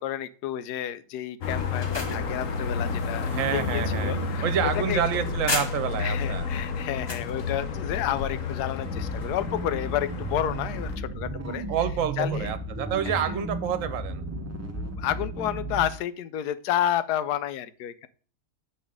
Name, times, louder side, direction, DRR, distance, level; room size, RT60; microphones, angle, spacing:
voice 1, 0.0-4.5 4.9-5.0 6.0-11.6 12.2-12.5 13.0-13.2 14.9-18.1, left 11 dB, 85° left, 14 dB, 1.2 m, -30 dB
sound 1, 1.4-11.0, left 4 dB, 60° left, 1.1 m, -31 dB
sound 2, 1.6-6.1 6.5-7.3, left 2 dB, 20° left, 0.7 m, -36 dB
voice 2, 3.3-4.1 4.4-6.5 11.7-14.2, right 9 dB, 60° right, 10 dB, 1.1 m, -28 dB
sound 3, 8.8-15.9, right 1 dB, 20° right, 0.4 m, -34 dB
5.6 x 4.4 x 6.3 m, 0.41 s
omnidirectional pair, 1.7 m